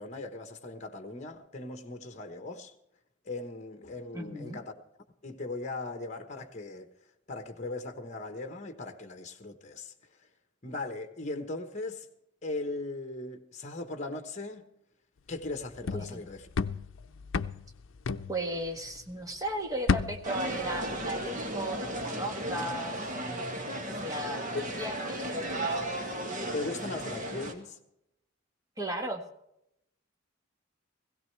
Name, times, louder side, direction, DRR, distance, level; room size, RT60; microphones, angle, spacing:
voice 1, 0.0-2.7 3.2-4.7 5.2-6.9 7.3-9.9 10.6-12.1 12.4-14.7 15.3-16.4 24.5-24.6 26.5-27.8, left 2 dB, 40° left, 1.2 m, -38 dB
voice 2, 4.1-4.6 15.9-16.2 18.3-23.2 23.9-25.9 28.8-29.2, right 1 dB, 20° right, 1.5 m, -36 dB
sound 1, 15.4-19.2 19.5-21.5 21.8-22.1, left 4 dB, 85° left, 0.5 m, -33 dB
sound 2, 20.2-27.5, right 1 dB, 45° right, 1.9 m, -35 dB
17.5 x 16.5 x 3.3 m
head